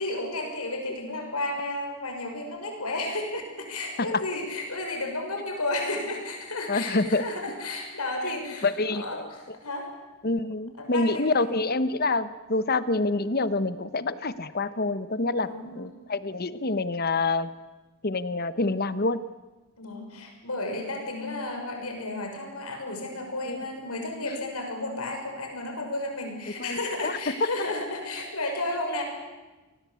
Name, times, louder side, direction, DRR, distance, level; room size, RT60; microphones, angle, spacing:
voice 1, 0.0-9.9 10.8-11.4 15.4-15.9 19.8-29.0, left 2 dB, 85° left, 3 dB, 6.2 m, -33 dB
voice 2, 6.7-7.2 8.3-9.3 10.2-17.6 18.0-19.2 23.5-23.6 24.4-24.5 26.6-27.3, left 3 dB, 45° left, 14 dB, 1.0 m, -27 dB
28.5 x 19.5 x 8.4 m, 1.2 s
head